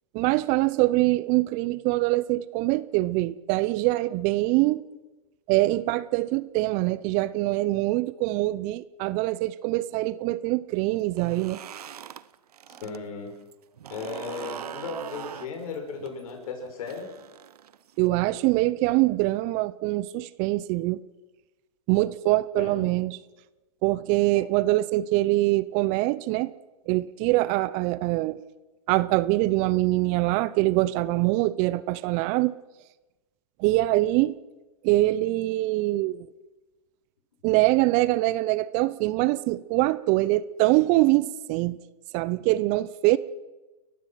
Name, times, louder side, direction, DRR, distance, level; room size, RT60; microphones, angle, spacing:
voice 1, 0.1-4.8 5.5-11.6 18.0-21.0 21.9-23.2 23.8-26.5 26.9-28.4 28.9-32.6 33.6-34.4 34.8-36.3 37.4-41.8 42.1-43.2, right 18 dB, 40° right, 18 dB, 0.7 m, -24 dB
sound 1, 11.0-13.0 13.3-18.1, right 9 dB, 75° right, 0.9 m, -41 dB
voice 2, 12.7-13.3 13.9-17.1 22.6-22.9 24.3-24.5, left 5 dB, 65° left, 4 dB, 6.4 m, -36 dB
29.5 x 15.0 x 5.9 m, 1.2 s
hypercardioid pair, 110°, 20 cm